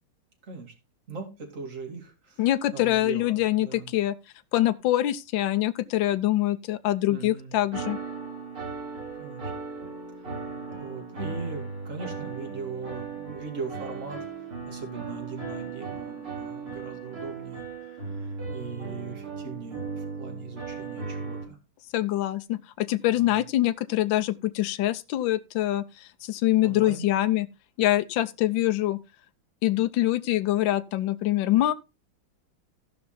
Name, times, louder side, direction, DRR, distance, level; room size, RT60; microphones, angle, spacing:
voice 1, 1.1-2.4 2.7-3.9 7.1-7.6 9.2-9.5 10.8-14.3 14.7-17.6 18.2-21.6 23.1-23.4 26.6-27.1, right 4 dB, 40° right, 2.8 m, -39 dB
voice 2, 2.4-4.1 4.5-8.0 21.9-25.8 26.2-27.5 27.8-29.0 29.6-31.7, left 14 dB, 70° left, 1.4 m, -24 dB
sound 1, 7.7-21.4, right 4 dB, 85° right, 5.4 m, -37 dB
16.0 x 5.7 x 3.9 m
omnidirectional pair, 2.3 m